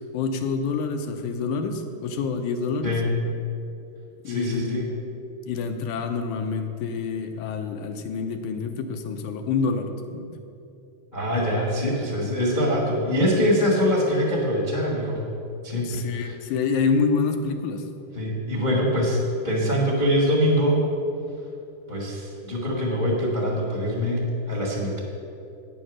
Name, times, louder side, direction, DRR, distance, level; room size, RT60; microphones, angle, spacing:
voice 1, 0.1-3.0 4.2-4.9 5.5-10.3 15.7-17.8, left 5 dB, 85° left, 5 dB, 2.1 m, -27 dB
voice 2, 4.2-4.9 11.1-15.2 15.6-16.3 18.1-19.2 19.4-20.8 21.9-25.0, equal, 30° left, -4 dB, 0.9 m, -23 dB
9.2 x 7.1 x 6.2 m, 2.7 s
omnidirectional pair, 3.5 m